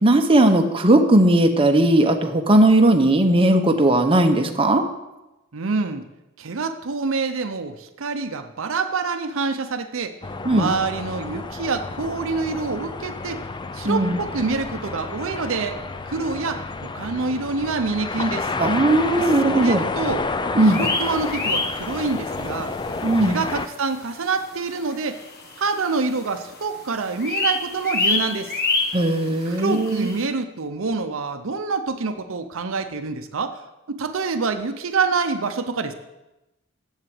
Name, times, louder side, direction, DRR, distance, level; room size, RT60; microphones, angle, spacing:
voice 1, 0.0-4.8 10.4-10.7 13.8-14.2 18.6-19.9 20.5-20.8 23.0-23.4 28.9-30.1, right 1 dB, 25° right, 5 dB, 0.8 m, -17 dB
voice 2, 5.5-6.0 6.4-10.1 10.5-13.4 13.7-18.5 19.5-20.2 20.7-22.7 23.2-25.2 25.6-28.5 29.5-33.6 33.9-35.9, right 4 dB, 70° right, 8 dB, 0.7 m, -26 dB
sound 1, 10.2-23.7, left 3 dB, 20° left, 0.5 m, -30 dB
sound 2, 20.7-22.4 22.8-22.9 23.4-23.5 24.2-24.3 24.5-24.6 24.8-26.0 26.2-26.6 26.9-30.2, left 3 dB, 50° left, 1.3 m, -26 dB
7.7 x 7.4 x 7.7 m, 0.99 s
head